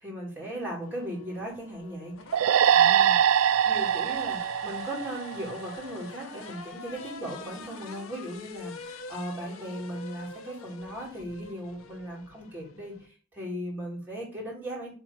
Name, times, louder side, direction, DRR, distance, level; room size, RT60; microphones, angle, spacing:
voice 1, 0.0-3.2 3.6-14.9, equal, 10° right, -6 dB, 2.7 m, -37 dB
sound 1, 0.8-13.1, left 4 dB, 85° left, 0.7 m, -45 dB
sound 2, 2.3-5.8, right 9 dB, 80° right, 0.3 m, -23 dB
4.4 x 4.2 x 5.7 m, 0.40 s
head